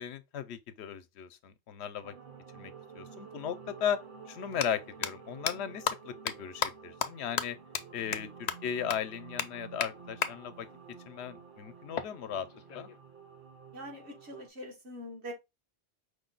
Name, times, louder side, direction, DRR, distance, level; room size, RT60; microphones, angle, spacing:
voice 1, 0.0-2.1 2.5-4.0 4.3-7.6 7.9-10.7 11.1-12.5 12.7-12.9, left 8 dB, 80° left, 0.9 m, -37 dB
sound 1, 2.0-14.5, right 6 dB, 50° right, 1.0 m, -50 dB
sound 2, 3.3-3.4 4.4-4.7 5.0-5.1 5.5-5.6 5.9-6.0 6.3-6.4 6.6-6.7 7.0-7.1 7.4-7.5 7.7-7.8 8.1-8.2 8.5-8.6 8.9-9.0 9.4-9.5 9.8-9.9 10.2-10.3 11.9-13.0, left 7 dB, 55° left, 0.5 m, -32 dB
voice 2, 13.7-15.3, equal, 75° right, 1.6 m, -43 dB
5.1 x 2.2 x 3.8 m
omnidirectional pair, 1.1 m